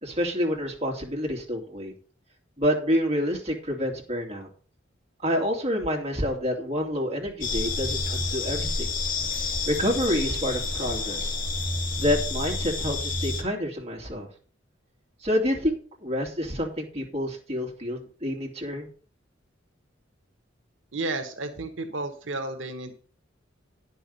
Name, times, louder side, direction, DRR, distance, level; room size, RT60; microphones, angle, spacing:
voice 1, 0.0-1.9 2.6-4.5 5.2-8.9 9.7-11.3 12.0-14.3 15.2-18.9, equal, 35° right, 0 dB, 2.8 m, -28 dB
sound 1, 7.4-13.4, left 3 dB, 45° left, 1.7 m, -29 dB
voice 2, 20.9-22.9, right 2 dB, 85° right, 6 dB, 1.2 m, -32 dB
10.0 x 5.8 x 6.7 m, 0.41 s
head